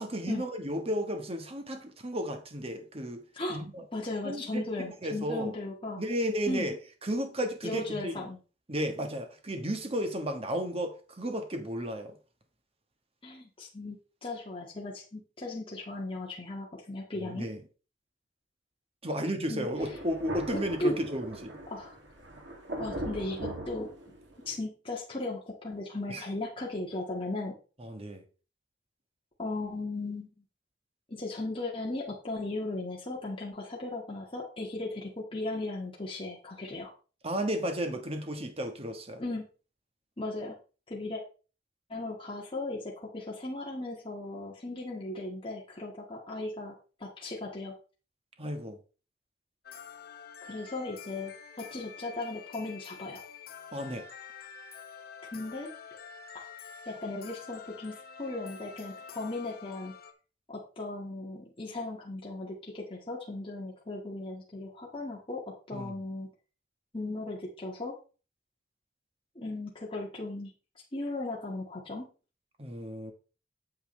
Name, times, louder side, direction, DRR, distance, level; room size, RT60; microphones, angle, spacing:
voice 1, 0.0-3.2 3.5-3.8 4.2-5.5 6.0-6.8 7.0-8.1 8.7-12.2 17.2-17.6 19.0-21.6 26.1-26.2 27.8-28.2 37.2-39.2 48.4-48.8 53.7-54.0 65.7-65.9 72.6-73.1, equal, 35° right, 1.3 m, -33 dB
voice 2, 3.9-6.0 6.5-6.7 7.6-8.4 13.2-17.5 19.5-19.7 20.5-21.0 21.7-22.0 22.8-23.9 24.5-27.5 29.4-30.3 31.1-36.9 39.2-39.4 40.2-40.6 40.9-41.2 41.9-46.7 47.0-47.7 50.4-53.2 55.3-55.7 56.9-59.9 60.5-66.3 66.9-67.9 69.4-70.5 70.9-72.1, left 2 dB, 30° left, 1.7 m, -36 dB
Thunder, 19.8-24.6, right 1 dB, 80° right, 2.3 m, -40 dB
sound 1, 49.6-60.1, left 6 dB, 55° left, 0.9 m, -47 dB
8.7 x 7.2 x 3.2 m
head